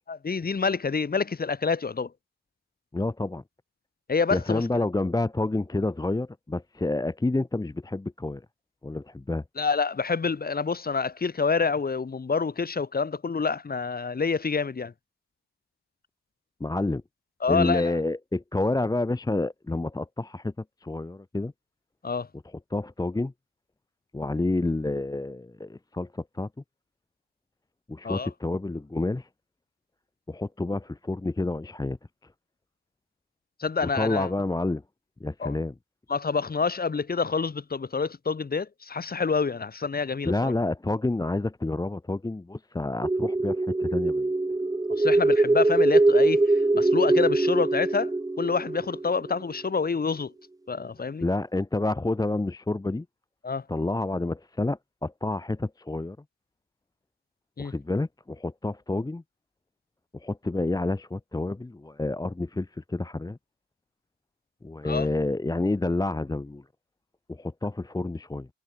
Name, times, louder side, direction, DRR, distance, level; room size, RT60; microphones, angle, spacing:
voice 1, 0.1-2.1 4.1-4.6 9.6-14.9 17.4-18.0 22.0-22.3 28.0-28.3 33.6-34.3 35.4-35.5 36.1-40.5 45.0-46.4 46.7-48.1 48.4-50.3 50.7-51.2 53.4-53.6 57.6-57.7 64.8-65.1, left 5 dB, 30° left, 2.9 m, -27 dB
voice 2, 2.9-3.4 4.3-8.4 8.8-9.4 16.6-17.0 17.5-20.5 20.8-21.5 22.7-23.3 24.1-26.5 27.9-29.3 30.3-32.0 33.9-34.8 35.2-35.7 40.2-44.3 51.2-53.0 53.7-56.2 57.6-59.2 60.1-63.4 64.6-66.6 67.3-68.5, left 2 dB, 10° left, 1.3 m, -29 dB
sound 1, 43.0-49.5, right 2 dB, 10° right, 1.2 m, -23 dB
cardioid pair, 90°, 30 cm